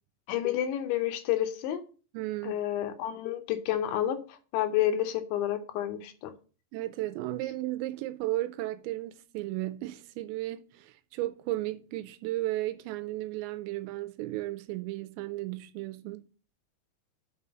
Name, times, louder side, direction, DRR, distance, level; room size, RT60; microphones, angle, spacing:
voice 1, 0.3-1.8 2.4-6.3, left 11 dB, 80° left, 3.1 m, -30 dB
voice 2, 2.1-2.6 6.7-16.2, right 16 dB, 85° right, 2.7 m, -34 dB
6.1 x 5.4 x 6.7 m
omnidirectional pair, 5.3 m